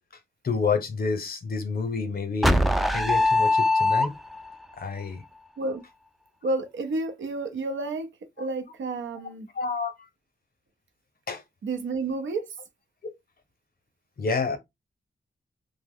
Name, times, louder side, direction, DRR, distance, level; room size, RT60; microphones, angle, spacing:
voice 1, 0.4-2.6 2.9-4.1 4.8-5.2 9.6-9.9 11.3-11.4 14.2-14.6, left 5 dB, 50° left, 0.7 m, -28 dB
sound 1, 2.4-4.5, left 2 dB, ahead, 0.3 m, -21 dB
voice 2, 6.4-8.1 8.4-9.5 11.6-12.5, right 3 dB, 85° right, 0.6 m, -30 dB
2.9 x 2.0 x 3.5 m
wide cardioid pair, 90°, 19 cm